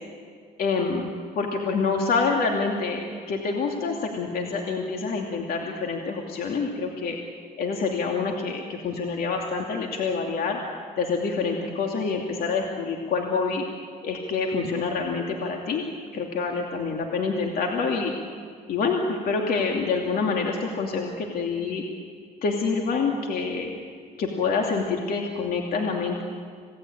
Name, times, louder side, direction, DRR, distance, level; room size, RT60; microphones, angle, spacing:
voice 1, 0.6-1.1 1.4-7.2 7.6-10.6 11.0-13.6 14.0-15.8 16.1-18.1 18.7-21.8 22.4-23.7 24.2-26.2, left 4 dB, 60° left, 1 dB, 2.7 m, -26 dB
27.0 x 18.5 x 8.9 m, 2.1 s
cardioid pair, 110°, 17 cm